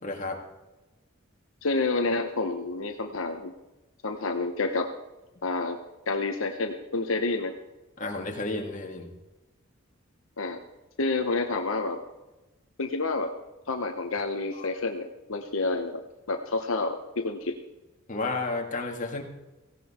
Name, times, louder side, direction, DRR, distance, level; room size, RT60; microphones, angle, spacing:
voice 1, 0.0-0.4 8.0-9.1 14.6-14.7 18.1-19.2, left 3 dB, 40° left, 1 dB, 2.3 m, -32 dB
voice 2, 1.6-3.5 4.0-4.9 5.4-5.8 6.1-7.5 10.4-10.6 11.0-12.0 12.8-13.3 13.7-16.0 16.3-17.5, left 3 dB, 75° left, 5 dB, 1.0 m, -29 dB
17.0 x 16.0 x 4.4 m, 1.1 s
head